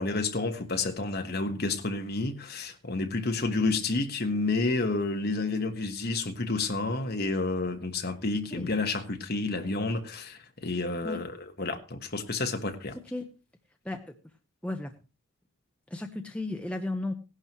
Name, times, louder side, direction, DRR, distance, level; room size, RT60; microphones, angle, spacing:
voice 1, 0.0-13.0, left 3 dB, 45° left, 1.3 m, -30 dB
voice 2, 14.6-14.9 15.9-17.1, left 2 dB, 5° left, 0.8 m, -34 dB
17.0 x 11.5 x 3.1 m
head